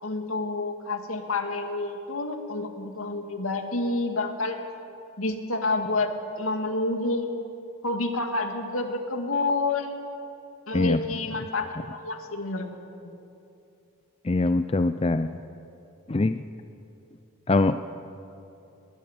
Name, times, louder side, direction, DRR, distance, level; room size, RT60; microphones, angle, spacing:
voice 1, 0.0-4.6 5.2-6.1 6.4-7.3 7.8-9.9 10.7-12.7 13.0-13.1, left 2 dB, 80° left, 4 dB, 2.2 m, -29 dB
voice 2, 14.2-15.3 16.1-16.4 17.5-17.8, left 2 dB, 25° left, 10 dB, 0.4 m, -23 dB
21.0 x 20.5 x 7.3 m, 2.8 s
head